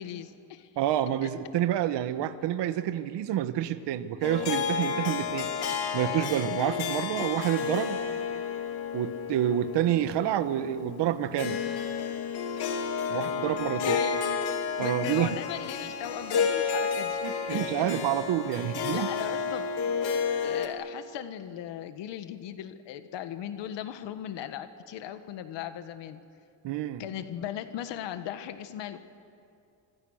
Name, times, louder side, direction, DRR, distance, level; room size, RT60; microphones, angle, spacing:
voice 1, 0.0-0.7 1.2-1.3 13.8-14.4 14.8-17.2 17.5-17.9 18.6-19.7 20.4-26.2 27.0-29.0, left 10 dB, 80° left, 9 dB, 1.5 m, -38 dB
voice 2, 0.7-5.5 5.9-8.0 8.9-11.6 13.1-14.0 14.8-15.4 17.2-19.1 26.6-27.1, right 11 dB, 75° right, 11 dB, 1.4 m, -28 dB
Harp, 4.2-20.7, left 6 dB, 65° left, 2.7 m, -31 dB
30.0 x 26.5 x 6.5 m, 2.4 s
cardioid pair, 145°, 42 cm